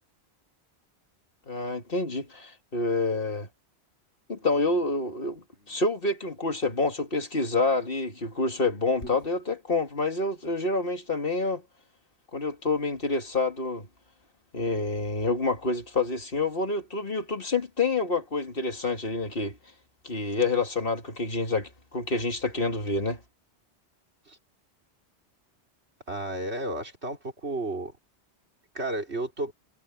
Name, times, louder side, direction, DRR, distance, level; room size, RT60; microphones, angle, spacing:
voice 1, 1.5-3.5 4.3-11.6 12.3-13.9 14.5-19.6 20.0-23.2, left 3 dB, 55° left, 2.5 m, -28 dB
Dog, 4.4-6.0 7.5-9.3, left 1 dB, 80° left, 7.5 m, -50 dB
voice 2, 26.1-27.9 28.7-29.5, right 2 dB, 70° right, 4.9 m, -32 dB
omnidirectional pair, 1.1 m